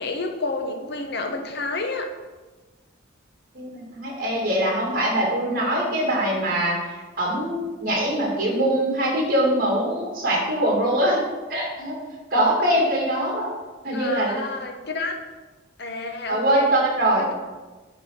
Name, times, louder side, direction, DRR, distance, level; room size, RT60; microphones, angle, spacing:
voice 1, 0.0-2.1 5.5-5.8 13.9-15.2 15.8-16.7 17.2-17.3, left 3 dB, 55° left, 4 dB, 1.0 m, -30 dB
voice 2, 3.5-11.2 11.5-12.0 12.3-13.5 13.8-14.4 16.3-17.2, right 1 dB, 45° right, -3 dB, 2.7 m, -23 dB
9.3 x 4.2 x 6.0 m, 1.2 s
head